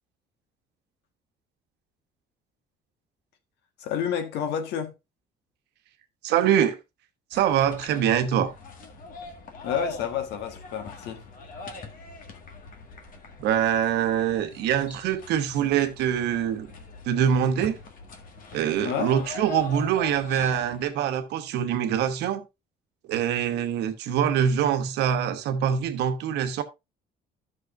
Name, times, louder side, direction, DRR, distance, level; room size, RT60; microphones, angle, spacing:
voice 1, 3.8-4.9 9.6-11.2 18.8-19.1, left 8 dB, 85° left, 1.4 m, -29 dB
voice 2, 6.2-6.8 7.3-8.5 13.4-16.7 17.0-17.8 18.5-22.4 23.1-26.6, right 9 dB, 80° right, 1.1 m, -24 dB
sound 1, 7.3-20.9, left 3 dB, 55° left, 1.8 m, -42 dB
12.0 x 6.3 x 2.5 m
cardioid pair, 110°, 17 cm